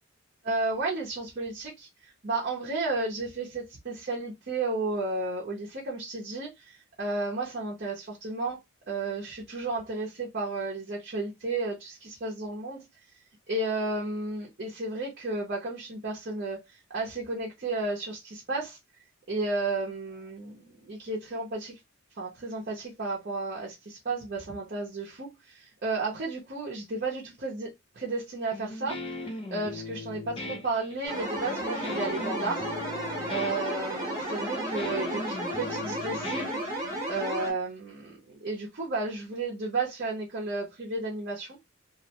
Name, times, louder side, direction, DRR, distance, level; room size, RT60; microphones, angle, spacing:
voice 1, 0.4-8.6 8.9-12.8 13.5-18.8 19.3-21.8 22.2-27.7 27.9-32.7 33.3-41.6, right 3 dB, 45° right, 0.6 m, -33 dB
Guitar, 28.5-37.2, left 2 dB, 25° left, 0.5 m, -39 dB
sound 1, 31.0-37.5, right 1 dB, 20° right, 0.9 m, -33 dB
2.4 x 2.1 x 2.8 m
head